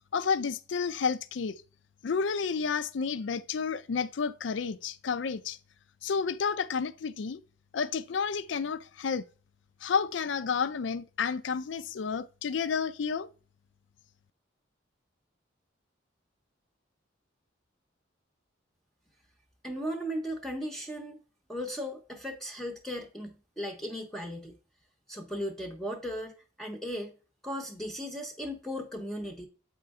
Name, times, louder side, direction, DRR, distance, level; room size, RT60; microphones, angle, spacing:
voice 1, 0.1-1.6 2.0-5.6 6.0-7.4 7.7-9.2 9.8-13.3, left 5 dB, 70° left, 0.4 m, -31 dB
voice 2, 19.6-21.2 21.5-24.6 25.1-27.1 27.4-29.5, equal, ahead, 0.7 m, -37 dB
7.7 x 4.4 x 3.5 m
head